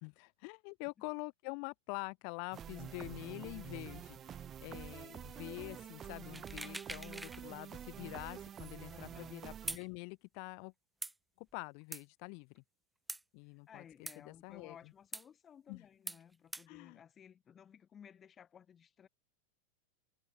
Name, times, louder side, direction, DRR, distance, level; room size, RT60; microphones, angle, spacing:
voice 1, 0.0-10.7 11.4-12.6 13.3-13.8 14.2-14.8 15.7-15.8 16.7-17.0, left 40 dB or more, 45° left, 1.2 m, -46 dB
sound 1, 2.5-9.8, right 9 dB, 25° right, 4.8 m, -48 dB
sound 2, 6.3-7.4 7.8-7.9 9.7-9.8 11.0-11.1 11.9-12.0 13.1-13.2 14.1-14.2 15.1-15.2 16.1-16.2 16.5-16.6, right 2 dB, 5° right, 0.5 m, -42 dB
voice 2, 8.9-9.4 13.4-19.1, left 8 dB, 25° left, 5.2 m, -58 dB
figure-of-eight pair, 90°, 0 cm